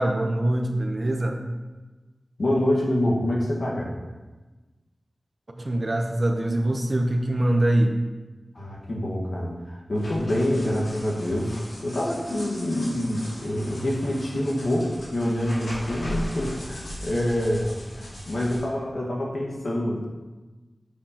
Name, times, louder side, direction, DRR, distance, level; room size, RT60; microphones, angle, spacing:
voice 1, 0.0-1.4 5.6-8.0, right 1 dB, 45° right, 4 dB, 0.7 m, -23 dB
voice 2, 2.4-3.9 8.5-11.5 11.8-20.1, left 1 dB, 70° left, -3 dB, 1.4 m, -26 dB
sound 1, 9.9-18.6, equal, 85° left, 1.9 m, -38 dB
8.7 x 5.0 x 2.9 m, 1.2 s
wide cardioid pair, 55°, 0 cm